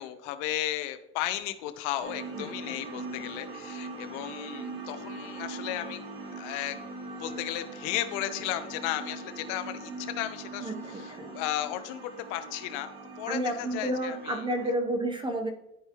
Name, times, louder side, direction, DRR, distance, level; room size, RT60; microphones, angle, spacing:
voice 1, 0.0-6.0 6.4-6.8 7.2-14.4, left 13 dB, 70° left, 10 dB, 0.9 m, -35 dB
sound 1, 2.0-14.8, right 3 dB, 65° right, 2.6 m, -41 dB
voice 2, 2.3-3.3 10.6-11.3 13.3-15.5, right 1 dB, 15° right, 5 dB, 0.8 m, -32 dB
11.5 x 4.6 x 3.0 m, 0.86 s
supercardioid pair, 125°, 36 cm